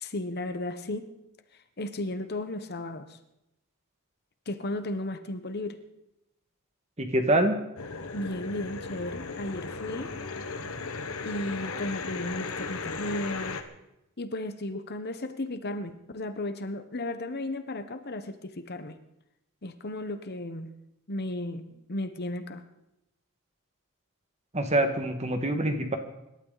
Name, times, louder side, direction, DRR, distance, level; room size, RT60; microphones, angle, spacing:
voice 1, 0.0-1.1 1.8-3.2 4.5-5.8 8.1-10.2 11.2-13.6 14.2-19.0 19.6-20.7 21.1-22.6, left 1 dB, 50° left, 1.1 m, -34 dB
voice 2, 7.0-7.5 24.5-26.0, right 1 dB, 30° right, 1.8 m, -25 dB
sound 1, 7.8-13.6, left 4 dB, 75° left, 1.4 m, -36 dB
26.0 x 12.5 x 4.1 m
head